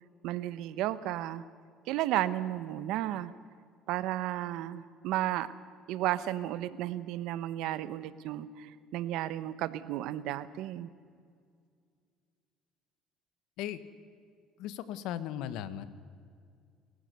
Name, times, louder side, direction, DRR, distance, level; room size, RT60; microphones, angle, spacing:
voice 1, 0.2-1.4 1.9-3.3 3.9-5.5 5.9-10.9, right 13 dB, 75° right, 15 dB, 1.0 m, -33 dB
voice 2, 14.6-15.9, left 11 dB, 75° left, 14 dB, 1.3 m, -37 dB
29.0 x 15.0 x 6.9 m, 2.2 s
cardioid pair, 115°, 0 cm